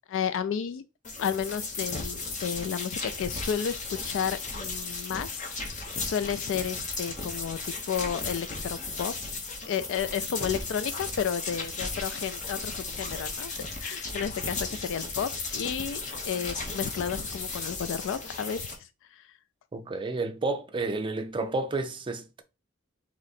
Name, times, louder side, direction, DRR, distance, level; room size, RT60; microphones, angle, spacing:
voice 1, 0.1-0.9 1.2-9.1 9.7-19.3, left 7 dB, 65° left, 0.3 m, -32 dB
sound 1, 1.0-18.8, left 3 dB, 35° left, 0.9 m, -35 dB
voice 2, 19.7-22.4, right 3 dB, 25° right, 0.5 m, -31 dB
3.7 x 3.0 x 4.1 m
head